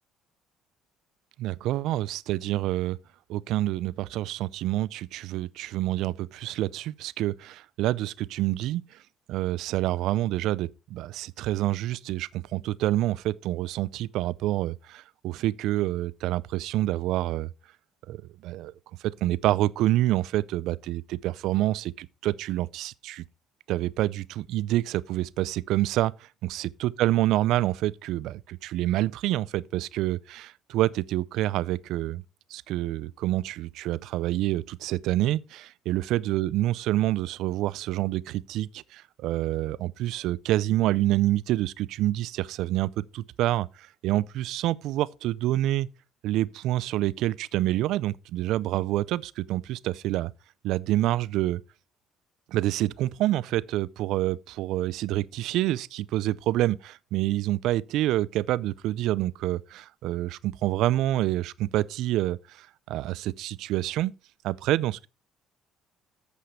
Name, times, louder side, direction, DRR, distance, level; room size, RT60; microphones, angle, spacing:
voice 1, 1.4-3.0 3.3-8.8 9.3-17.5 18.1-18.7 19.2-23.2 23.7-26.1 26.4-32.2 32.5-43.7 44.0-45.9 46.2-50.3 50.6-51.6 52.5-64.1 64.4-65.1, right 15 dB, 75° right, 0.4 m, -27 dB
8.2 x 8.0 x 4.3 m
supercardioid pair, 80°, 0 cm